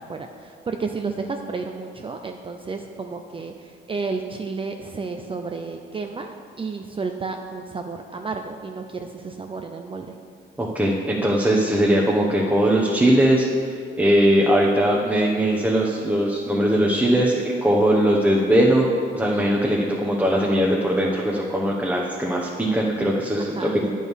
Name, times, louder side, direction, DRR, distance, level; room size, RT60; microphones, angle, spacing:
voice 1, 0.1-3.5 3.9-10.1 23.4-23.8, right 4 dB, 25° right, 4 dB, 0.5 m, -32 dB
voice 2, 10.6-13.4 14.0-18.9 19.1-23.9, right 1 dB, 10° right, -3 dB, 1.1 m, -20 dB
9.1 x 5.5 x 6.3 m, 2.4 s
cardioid pair, 90°, 20 cm